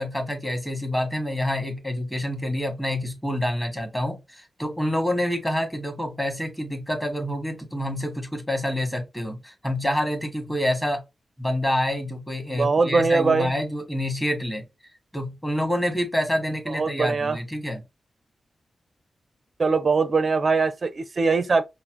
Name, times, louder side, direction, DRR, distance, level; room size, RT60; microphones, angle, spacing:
voice 1, 0.0-11.0 11.4-14.6 15.1-17.8, left 1 dB, 10° left, 1.3 m, -27 dB
voice 2, 12.5-13.5 16.7-17.4 19.6-21.6, right 4 dB, 45° right, 0.4 m, -21 dB
5.1 x 2.0 x 3.0 m
wide cardioid pair, 100°, 0 cm